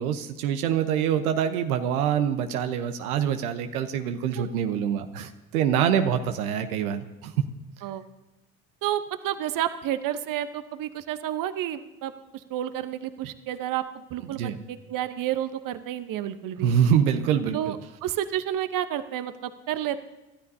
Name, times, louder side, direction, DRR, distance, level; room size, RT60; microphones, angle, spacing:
voice 1, 0.0-7.3 14.3-14.6 16.6-17.7, right 8 dB, 75° right, 7 dB, 1.1 m, -25 dB
voice 2, 8.8-13.8 14.1-16.7 17.5-20.0, right 11 dB, 45° right, 11 dB, 1.0 m, -30 dB
27.5 x 13.0 x 2.8 m, 1.0 s
hypercardioid pair, 65°, 44 cm